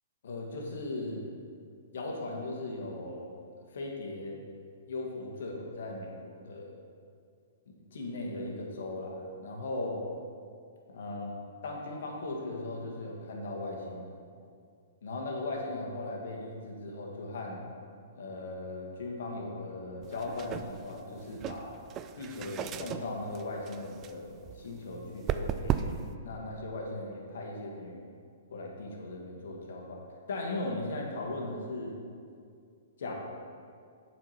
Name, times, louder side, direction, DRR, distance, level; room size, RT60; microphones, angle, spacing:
voice 1, 0.2-1.2 1.9-3.4 3.7-4.4 4.9-6.8 7.7-10.0 10.9-11.3 11.6-14.1 15.0-17.6 18.2-21.8 22.2-28.1 28.5-30.0 30.3-31.9 33.0-33.1, left 2 dB, 70° left, -1 dB, 1.6 m, -38 dB
sound 1, 20.0-26.2, right 9 dB, 30° right, 0.3 m, -37 dB
7.3 x 4.6 x 5.8 m, 2.3 s
hypercardioid pair, 125°, 0 cm